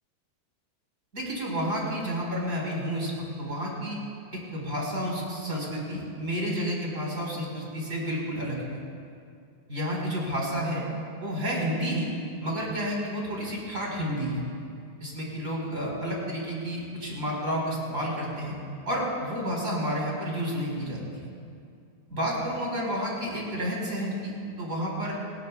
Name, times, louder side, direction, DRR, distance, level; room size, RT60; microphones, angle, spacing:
voice 1, 1.1-4.0 4.3-8.6 9.7-10.8 11.2-12.1 12.4-14.4 15.0-18.5 18.8-21.3 22.1-25.2, equal, 20° right, -3 dB, 4.6 m, -30 dB
26.5 x 20.0 x 2.4 m, 2.4 s
omnidirectional pair, 4.7 m